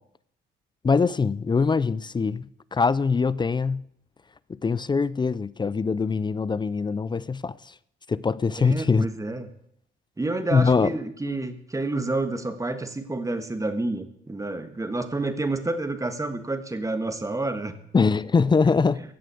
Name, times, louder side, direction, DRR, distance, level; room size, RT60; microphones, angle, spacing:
voice 1, 0.8-3.9 4.5-7.7 8.1-9.1 10.5-10.9 17.9-19.0, left 5 dB, 20° left, 0.4 m, -23 dB
voice 2, 8.6-9.5 10.2-17.7, right 2 dB, 15° right, 1.5 m, -29 dB
15.5 x 7.5 x 6.9 m
cardioid pair, 90°, 20 cm